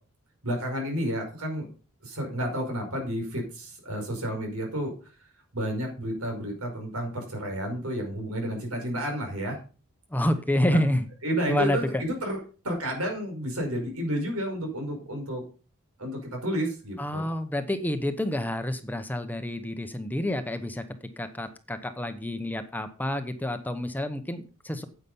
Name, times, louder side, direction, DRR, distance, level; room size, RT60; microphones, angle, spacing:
voice 1, 0.4-1.7 2.0-4.9 5.5-9.6 10.7-10.8 11.2-12.4 12.6-15.4 16.0-17.3, equal, 80° right, 2 dB, 5.5 m, -31 dB
voice 2, 10.1-11.1 11.5-12.0 17.0-20.8 21.2-24.8, left 1 dB, 10° left, 9 dB, 0.8 m, -28 dB
9.7 x 8.2 x 5.5 m, 0.36 s
head